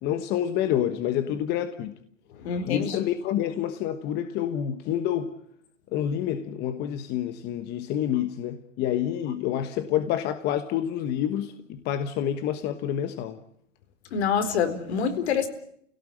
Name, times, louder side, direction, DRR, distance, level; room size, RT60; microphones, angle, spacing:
voice 1, 0.0-1.9 2.7-5.3 5.9-13.4, left 10 dB, 25° left, 1.3 m, -28 dB
voice 2, 2.4-3.0 14.1-15.5, left 6 dB, 60° left, 4.2 m, -26 dB
29.5 x 17.5 x 8.7 m
hypercardioid pair, 140°, 37 cm